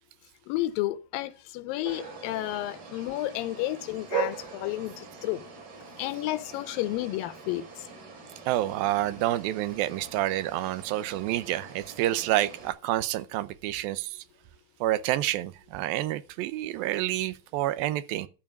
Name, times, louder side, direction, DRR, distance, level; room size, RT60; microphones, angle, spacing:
voice 1, 0.5-5.5 6.0-7.9, left 15 dB, 85° left, 2.4 m, -31 dB
sound 1, 1.8-12.7, right 5 dB, 65° right, 4.4 m, -41 dB
voice 2, 8.5-14.2 14.8-18.3, right 14 dB, 85° right, 2.5 m, -28 dB
13.0 x 4.8 x 7.0 m
omnidirectional pair, 4.1 m